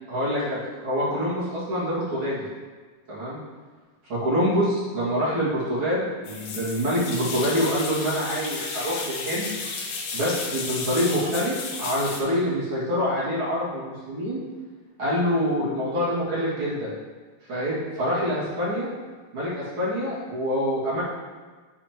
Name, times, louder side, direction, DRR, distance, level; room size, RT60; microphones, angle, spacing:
voice 1, 0.1-2.4 3.1-3.4 4.1-9.5 10.1-14.4 15.0-16.9 17.5-18.9 19.3-21.0, equal, 40° right, -9 dB, 2.4 m, -26 dB
sound 1, 6.2-12.2, left 4 dB, 85° left, 2.9 m, -33 dB
11.0 x 4.2 x 3.0 m, 1.4 s
omnidirectional pair, 4.5 m